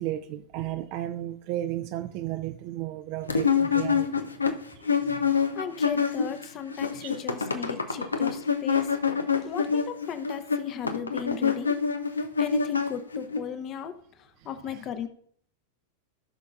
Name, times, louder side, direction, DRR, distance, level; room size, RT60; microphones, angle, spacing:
voice 1, 0.0-4.3 4.8-5.2 7.0-7.5 7.8-8.3 14.7-14.8, right 13 dB, 45° right, 0.5 m, -35 dB
sound 1, 3.3-6.4 6.7-13.4, left 6 dB, 75° left, 0.6 m, -26 dB
voice 2, 5.3-8.9 9.4-11.7 12.4-15.1, left 8 dB, 35° left, 0.8 m, -36 dB
17.0 x 5.8 x 2.5 m
figure-of-eight pair, 90°, 0 cm